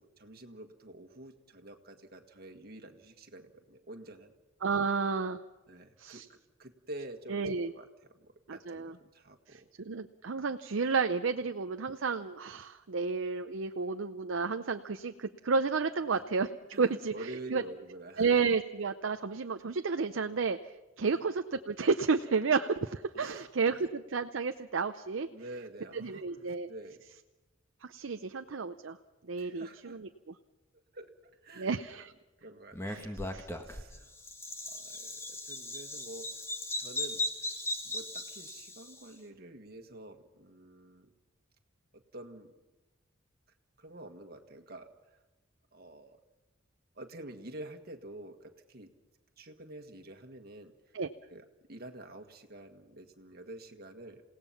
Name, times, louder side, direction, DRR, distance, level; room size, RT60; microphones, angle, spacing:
voice 1, 0.0-4.3 5.7-7.4 7.8-9.7 16.1-16.2 16.7-18.3 21.0-21.2 23.1-23.5 23.8-23.9 25.3-27.0 29.4-30.0 30.7-31.8 32.4-34.1 34.6-36.3 36.8-41.1 41.9-42.5 43.8-45.2 45.7-46.2 47.0-48.9 49.4-50.9 51.3-54.2, right 1 dB, 50° right, 5 dB, 1.7 m, -48 dB
voice 2, 4.6-5.4 6.0-6.2 7.3-7.7 8.5-8.9 9.5-16.5 16.8-17.6 18.2-20.6 21.0-25.3 25.9-26.7 27.9-29.0 29.3-30.1 31.6-32.1 32.9-33.0 33.3-33.5 50.9-51.1, right 4 dB, 70° right, 8 dB, 0.6 m, -31 dB
Bird vocalization bird call bird song, 32.7-39.0, left 1 dB, 15° left, 1.7 m, -38 dB
28.5 x 17.5 x 5.8 m, 1.1 s
head